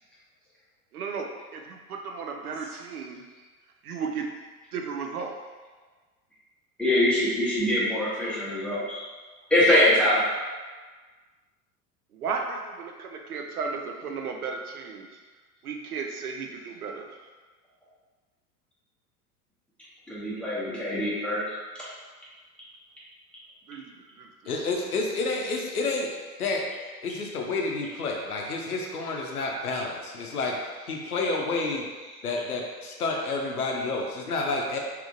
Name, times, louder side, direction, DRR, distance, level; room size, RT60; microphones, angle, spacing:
voice 1, 0.9-3.2 3.8-4.3 4.7-5.3 12.1-15.1 15.6-17.1 23.7-24.3, right 5 dB, 75° right, 2 dB, 0.6 m, -34 dB
voice 2, 6.8-9.0 9.5-10.2 20.1-21.5, left 1 dB, ahead, -9 dB, 0.9 m, -23 dB
voice 3, 24.5-26.1 26.4-26.6 27.0-30.6 30.9-31.8 32.2-34.8, left 3 dB, 75° left, 0 dB, 0.7 m, -29 dB
3.5 x 2.8 x 2.5 m, 1.4 s
figure-of-eight pair, 85°, 45 cm